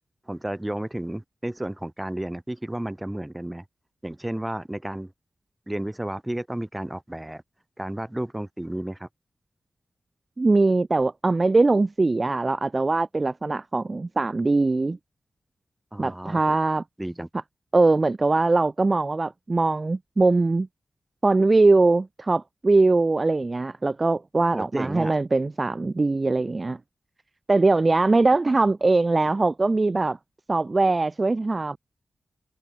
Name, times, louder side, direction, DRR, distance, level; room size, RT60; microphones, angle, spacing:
voice 1, 0.3-3.6 4.0-5.1 5.7-7.4 7.8-9.1 15.9-16.6 17.0-17.3 24.5-25.2, right 1 dB, 10° right, 1.9 m, -32 dB
voice 2, 10.4-15.0 16.0-16.8 17.7-20.7 21.2-26.8 27.5-30.2 30.5-31.8, right 3 dB, 30° right, 0.4 m, -21 dB
wide cardioid pair, 120°, 0 cm